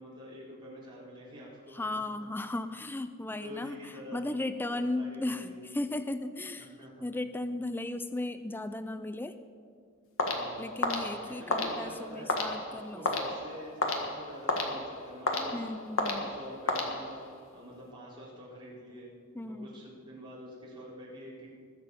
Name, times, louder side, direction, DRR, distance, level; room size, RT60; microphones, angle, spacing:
voice 1, 0.0-1.8 3.3-4.3 4.7-5.6 6.8-7.1 10.3-10.8 11.2-12.3 12.6-15.6 16.0-17.1 17.5-19.1 19.5-21.5, left 1 dB, 20° right, -7 dB, 4.2 m, -46 dB
voice 2, 1.7-6.7 7.0-9.4 10.6-13.1 15.5-16.3 19.3-19.8, left 2 dB, 10° left, 11 dB, 0.3 m, -36 dB
sound 1, 10.2-17.4, left 2 dB, 65° left, 1.6 m, -33 dB
21.0 x 7.5 x 5.7 m, 2.2 s
head